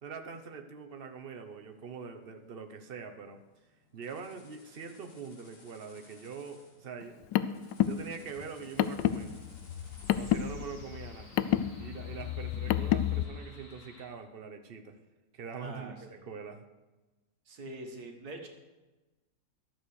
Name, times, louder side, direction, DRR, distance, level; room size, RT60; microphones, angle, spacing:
voice 1, 0.0-3.4 3.9-7.2 7.8-9.3 10.1-11.3 11.8-14.9 15.3-16.7, right 5 dB, 40° right, 6 dB, 0.9 m, -43 dB
sound 1, 1.1-14.1, left 2 dB, 50° left, 2.3 m, -58 dB
Car, 7.0-13.2, left 11 dB, 85° left, 1.2 m, -30 dB
voice 2, 15.6-16.2 17.5-18.5, right 2 dB, 60° right, 3 dB, 2.0 m, -44 dB
11.5 x 7.8 x 6.4 m, 1.1 s
omnidirectional pair, 1.9 m